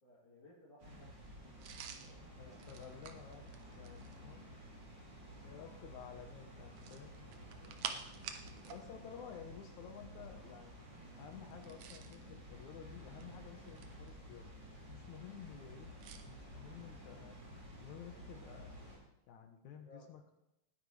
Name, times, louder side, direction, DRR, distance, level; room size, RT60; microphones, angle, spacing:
voice 1, 0.0-2.6 7.5-8.2 16.4-16.6 19.7-20.1, left 1 dB, 50° left, -9 dB, 4.0 m, -63 dB
Water, 0.8-19.0, equal, 50° right, 5.6 m, -53 dB
sound 1, 1.6-4.3 6.7-8.8 9.1-9.3 11.5-12.2 13.0-14.1 16.0-16.3, right 8 dB, 80° right, 2.4 m, -48 dB
voice 2, 2.4-4.5 5.4-7.8 8.7-10.9 11.2-14.5 14.9-15.9 16.2-18.8 19.3-20.3, left 8 dB, 75° left, 5 dB, 2.4 m, -53 dB
19.0 x 10.5 x 3.3 m, 0.89 s
omnidirectional pair, 3.4 m